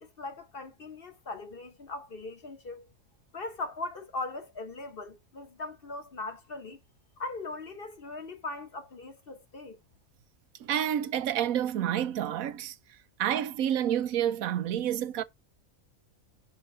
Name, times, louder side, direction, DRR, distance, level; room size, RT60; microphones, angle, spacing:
voice 1, 0.0-2.9 3.3-6.8 7.2-9.8, left 3 dB, 45° left, 1.3 m, -39 dB
voice 2, 10.6-12.7 13.2-15.2, right 10 dB, 85° right, 1.1 m, -29 dB
5.4 x 5.3 x 5.4 m
omnidirectional pair, 1.4 m